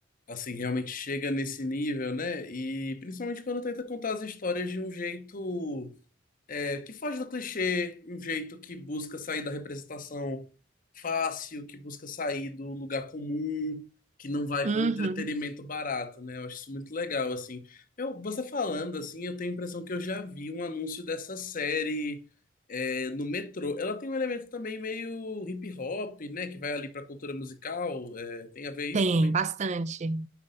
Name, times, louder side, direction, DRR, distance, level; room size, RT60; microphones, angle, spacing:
voice 1, 0.3-6.0 6.5-10.5 11.0-13.9 14.2-22.2 22.7-29.3, left 3 dB, 45° left, 0.9 m, -33 dB
voice 2, 14.6-15.3 28.9-30.3, right 3 dB, 35° right, 0.4 m, -27 dB
5.9 x 5.0 x 5.2 m
head